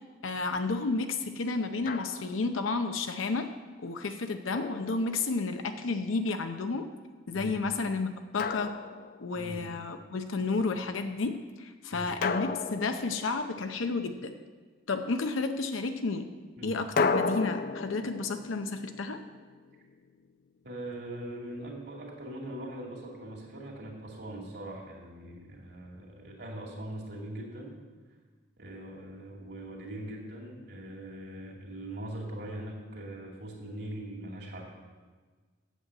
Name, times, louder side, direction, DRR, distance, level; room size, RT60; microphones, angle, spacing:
voice 1, 0.2-3.5 3.8-6.9 7.3-8.8 9.2-14.3 14.9-16.3 16.6-19.2, left 3 dB, 85° left, 7 dB, 0.6 m, -31 dB
Drum, 1.9-2.5 4.5-5.6 8.4-9.6 12.2-13.9 17.0-19.9, left 4 dB, 45° left, 0.4 m, -34 dB
voice 2, 20.6-27.7 28.6-34.7, right 1 dB, 55° right, -3 dB, 2.3 m, -41 dB
8.3 x 7.5 x 7.4 m, 1.4 s
head